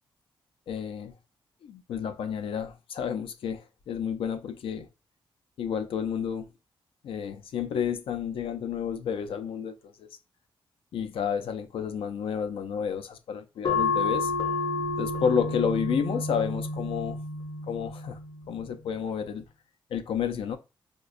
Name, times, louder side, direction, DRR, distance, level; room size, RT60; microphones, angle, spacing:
voice 1, 0.7-1.1 1.6-4.9 5.6-6.5 7.0-10.2 10.9-14.3 15.0-17.2 17.6-18.2 18.5-19.5 19.9-20.6, left 7 dB, 85° left, 0.4 m, -31 dB
sound 1, 13.6-18.8, left 3 dB, 45° left, 0.7 m, -30 dB
4.8 x 2.2 x 2.4 m
wide cardioid pair, 150°, 9 cm